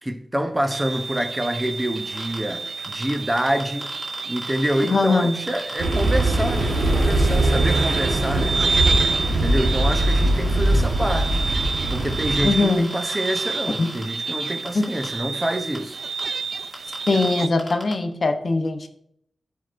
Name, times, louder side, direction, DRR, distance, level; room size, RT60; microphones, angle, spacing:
voice 1, 0.0-3.9 4.3-8.6 9.3-11.5 11.9-16.0, right 1 dB, 15° right, 0.6 m, -27 dB
sound 1, 0.7-17.5, right 4 dB, 60° right, 0.3 m, -29 dB
sound 2, 2.2-2.4 2.8-4.9 5.5-14.0 14.7-15.1 15.8-15.9 16.2-16.3 16.7-17.3 17.6-17.9, left 1 dB, 5° left, 2.1 m, -39 dB
voice 2, 4.8-5.4 12.4-13.0 13.8-13.9 14.7-14.9 17.1-18.9, left 3 dB, 50° left, 0.7 m, -21 dB
sound 3, 5.8-12.5, right 1 dB, 80° right, 1.2 m, -21 dB
12.0 x 4.7 x 2.5 m
wide cardioid pair, 75°, 0 cm